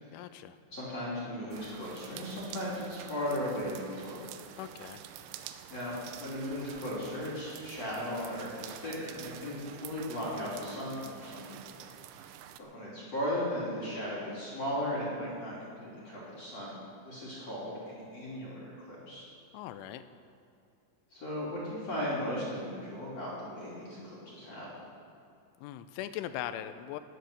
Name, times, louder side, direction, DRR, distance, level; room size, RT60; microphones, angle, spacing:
voice 1, 0.1-0.6 4.6-5.0 19.5-20.0 25.6-27.0, left 11 dB, 90° left, 11 dB, 3.1 m, -40 dB
voice 2, 0.7-4.3 5.7-11.8 12.6-16.8 17.0-19.3 21.1-24.7, equal, 40° left, -7 dB, 3.3 m, -37 dB
sound 1, 1.5-12.6, right 10 dB, 85° right, 2.5 m, -48 dB
19.0 x 9.1 x 6.6 m, 2.6 s
omnidirectional pair, 5.5 m